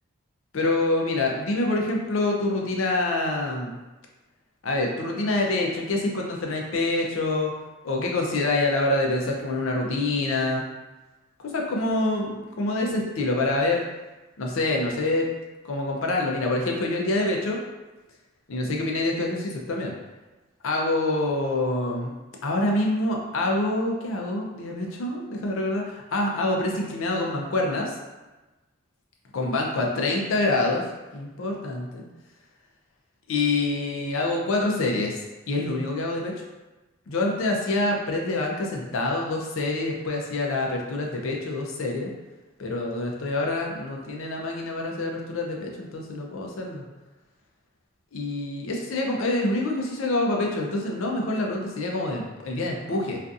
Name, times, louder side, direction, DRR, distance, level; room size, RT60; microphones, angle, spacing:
voice 1, 0.5-3.7 4.6-7.5 7.8-10.6 11.4-13.8 14.4-15.3 15.6-17.6 18.5-19.9 20.6-22.1 22.4-27.9 29.3-30.8 31.1-32.0 33.3-35.2 35.5-36.3 37.1-42.1 42.6-46.8 48.1-53.2, left 2 dB, 80° left, 0 dB, 0.5 m, -26 dB
2.5 x 2.4 x 2.3 m, 1.1 s
head